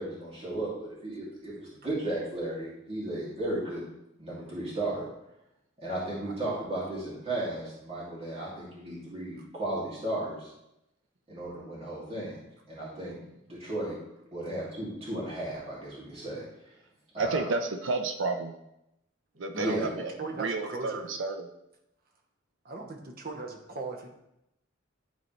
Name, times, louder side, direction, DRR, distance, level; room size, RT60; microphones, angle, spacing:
voice 1, 0.0-3.8 4.2-5.1 5.8-10.5 11.3-12.4 12.7-13.2 13.5-14.0 14.3-16.4 17.1-17.5 19.5-19.9, right 1 dB, 30° right, -7 dB, 2.4 m, -34 dB
voice 2, 17.2-18.5 19.4-21.5, right 3 dB, 75° right, 6 dB, 0.6 m, -31 dB
voice 3, 19.5-19.9 20.2-21.1 22.7-23.0 23.2-24.2, right 3 dB, 50° right, 2 dB, 1.0 m, -38 dB
10.5 x 4.1 x 3.2 m, 0.85 s
head